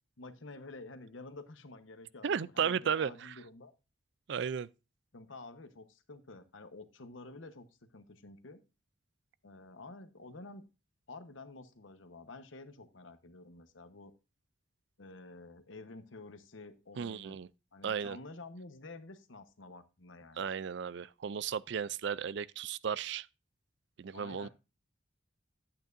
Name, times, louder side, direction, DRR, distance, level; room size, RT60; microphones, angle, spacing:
voice 1, 0.2-3.7 5.1-8.6 9.4-10.6 11.1-14.1 15.0-17.4 17.7-20.5 24.1-24.5, left 2 dB, 75° left, 1.1 m, -50 dB
voice 2, 2.2-3.3 4.3-4.7 17.0-17.5 17.8-18.2 20.4-23.3 24.0-24.5, right 7 dB, 60° right, 0.4 m, -34 dB
11.0 x 8.8 x 2.6 m
head